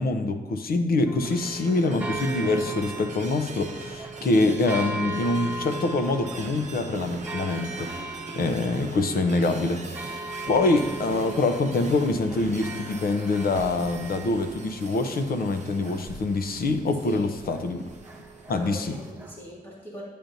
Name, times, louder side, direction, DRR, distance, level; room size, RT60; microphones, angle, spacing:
voice 1, 0.0-10.2 10.5-17.8 18.5-18.9, left 2 dB, 65° left, 7 dB, 0.6 m, -25 dB
sound 1, 1.1-19.4, right 3 dB, 10° right, 0.9 m, -39 dB
sound 2, 1.2-19.1, right 3 dB, 45° right, 0.8 m, -42 dB
voice 2, 18.5-20.0, equal, 30° left, -5 dB, 1.9 m, -40 dB
9.0 x 8.5 x 2.6 m, 1.3 s
wide cardioid pair, 155°, 16 cm